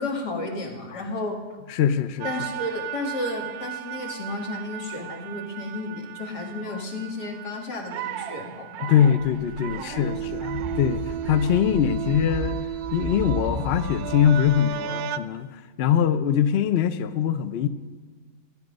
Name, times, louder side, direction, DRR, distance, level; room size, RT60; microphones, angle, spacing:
voice 1, 0.0-1.4 2.2-8.9 9.6-10.5, left 2 dB, 85° left, 2.5 m, -33 dB
voice 2, 1.7-2.3 6.7-6.8 8.8-12.6 12.9-17.7, left 9 dB, 65° left, 0.6 m, -23 dB
sound 1, 2.2-15.2, right 10 dB, 75° right, 1.0 m, -34 dB
sound 2, 9.2-14.6, left 1 dB, 35° left, 1.0 m, -36 dB
15.5 x 10.5 x 5.3 m
omnidirectional pair, 1.7 m